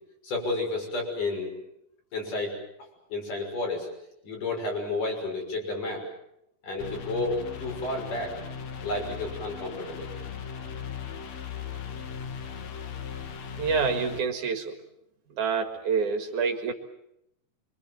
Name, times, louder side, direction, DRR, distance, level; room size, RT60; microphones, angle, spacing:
voice 1, 0.2-1.5 2.1-2.6 3.1-3.9 4.2-6.0 6.6-8.3 8.8-10.1, left 2 dB, 75° left, 1 dB, 7.8 m, -31 dB
sound 1, 6.8-14.2, left 7 dB, 60° left, 2.8 m, -38 dB
voice 2, 13.6-14.7 15.4-16.7, right 5 dB, 70° right, 5 dB, 3.1 m, -27 dB
25.0 x 25.0 x 7.6 m, 0.79 s
omnidirectional pair, 3.7 m